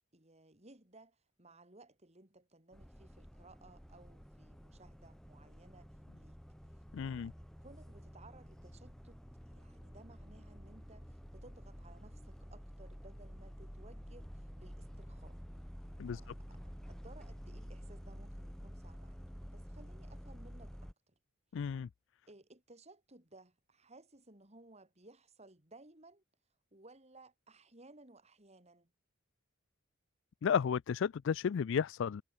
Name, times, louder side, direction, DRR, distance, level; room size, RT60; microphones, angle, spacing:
voice 1, 0.1-5.9 6.2-6.4 6.7-7.4 7.6-9.2 9.5-15.4 16.1-21.2 22.3-26.2 26.7-28.9, right 2 dB, 30° right, 3.9 m, -60 dB
sound 1, 2.7-20.9, equal, ahead, 3.4 m, -50 dB
voice 2, 6.9-7.3 16.0-16.2 21.5-21.9 30.4-32.2, left 7 dB, 60° left, 0.3 m, -33 dB
head